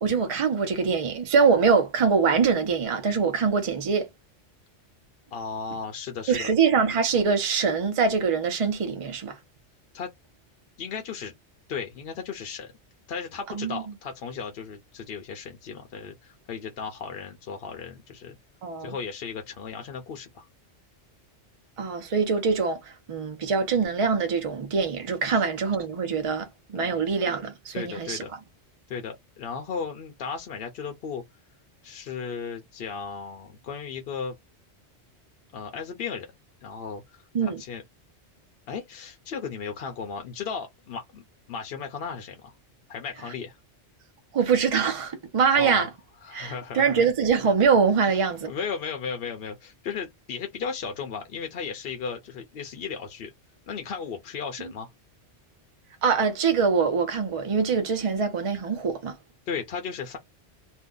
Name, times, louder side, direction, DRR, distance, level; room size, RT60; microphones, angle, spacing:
voice 1, 0.0-4.1 6.3-9.4 13.5-13.8 18.6-18.9 21.8-28.2 37.3-37.6 44.3-45.9 46.3-48.5 54.6-54.7 56.0-59.2, right 5 dB, 40° right, 0.5 m, -24 dB
voice 2, 5.3-6.5 9.9-10.1 10.8-11.3 11.7-12.7 13.1-18.4 18.8-20.5 25.3-25.4 26.7-27.1 27.7-28.3 28.9-31.2 31.8-34.3 35.5-36.3 36.6-37.0 37.4-37.8 38.7-42.5 42.9-43.6 45.5-45.9 46.2-47.0 48.1-53.3 53.7-54.9 59.5-60.2, left 6 dB, 65° left, 0.8 m, -35 dB
2.6 x 2.2 x 3.7 m
omnidirectional pair, 1.2 m